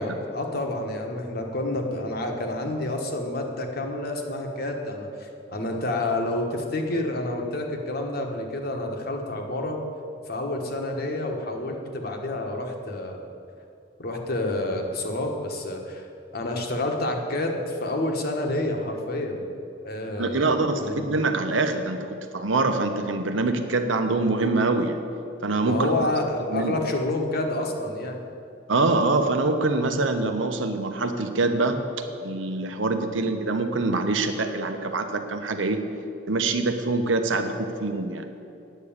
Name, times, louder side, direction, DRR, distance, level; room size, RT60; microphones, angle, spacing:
voice 1, 0.0-9.8 10.3-13.2 14.0-16.1 16.3-19.5 19.8-21.0 25.6-28.2, left 1 dB, 55° left, 2 dB, 1.3 m, -29 dB
voice 2, 20.2-25.0 25.4-25.9 26.5-26.8 28.7-31.8 32.2-35.8 36.3-38.3, right 3 dB, 85° right, 7 dB, 0.9 m, -24 dB
9.3 x 6.7 x 8.6 m, 2.6 s
head